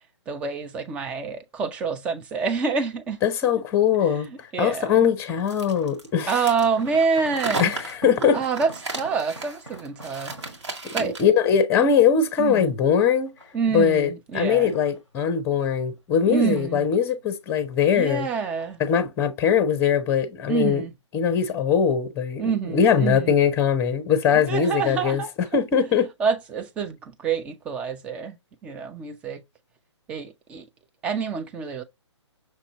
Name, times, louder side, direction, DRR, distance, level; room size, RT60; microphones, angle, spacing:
voice 1, 0.3-3.2 4.3-5.0 6.3-7.7 8.3-10.3 10.9-11.2 12.4-12.8 13.5-14.7 16.3-16.9 17.9-18.8 20.5-20.9 22.4-23.3 24.4-25.3 26.2-28.4 28.6-29.4 30.1-30.7 31.0-31.8, right 5 dB, 5° right, 0.3 m, -27 dB
sound 1, 3.1-3.5 4.4-6.3 6.6-11.4 11.9-12.7 13.2-14.0 14.5-15.8 16.1-17.3 17.5-18.2 18.6-18.9 19.2-19.3, right 1 dB, 90° right, 2.7 m, -47 dB
voice 2, 3.2-4.3 4.6-6.4 7.6-8.4 10.9-13.3 13.7-18.3 18.8-20.8 21.1-25.2 25.5-26.1, left 7 dB, 15° left, 0.7 m, -21 dB
sound 2, 5.5-11.4, right 3 dB, 70° right, 1.9 m, -34 dB
6.2 x 2.6 x 2.9 m
figure-of-eight pair, 135°, 15 cm